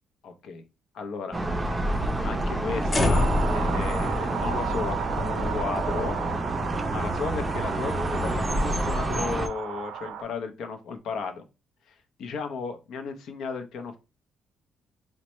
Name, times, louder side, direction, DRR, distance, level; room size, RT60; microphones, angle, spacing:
voice 1, 0.2-0.6 0.9-1.4 2.2-6.2 6.9-11.4 11.9-14.0, left 5 dB, 70° left, 7 dB, 0.6 m, -34 dB
sound 1, 1.3-9.5, right 1 dB, 15° right, 0.5 m, -29 dB
sound 2, 2.9-9.2, left 2 dB, 25° left, 0.7 m, -30 dB
sound 3, 3.1-10.2, right 9 dB, 90° right, 0.5 m, -34 dB
4.1 x 2.2 x 3.0 m, 0.29 s
cardioid pair, 105°, 0 cm